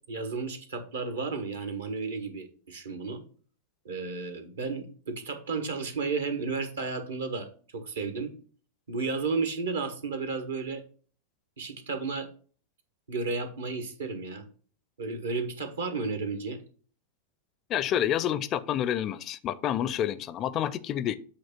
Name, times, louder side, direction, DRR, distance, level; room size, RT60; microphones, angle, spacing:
voice 1, 0.1-3.2 3.8-7.5 7.7-8.3 8.9-10.8 11.6-12.3 13.1-14.5 15.0-16.6, right 4 dB, 65° right, 9 dB, 1.2 m, -33 dB
voice 2, 17.7-21.2, left 10 dB, 35° left, 16 dB, 0.4 m, -28 dB
8.3 x 2.9 x 5.7 m, 0.42 s
figure-of-eight pair, 90°, 0 cm